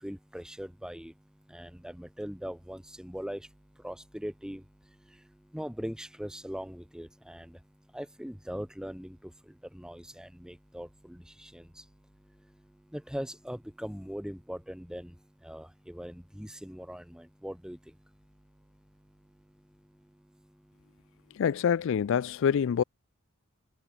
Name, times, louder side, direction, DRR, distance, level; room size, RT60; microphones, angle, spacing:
voice 1, 0.0-1.1 1.5-3.4 3.8-4.6 5.5-7.5 7.9-9.2 9.7-11.6 12.9-15.1 15.4-17.8, equal, 5° right, 1.3 m, -40 dB
voice 2, 21.4-22.8, left 7 dB, 65° left, 0.3 m, -26 dB
head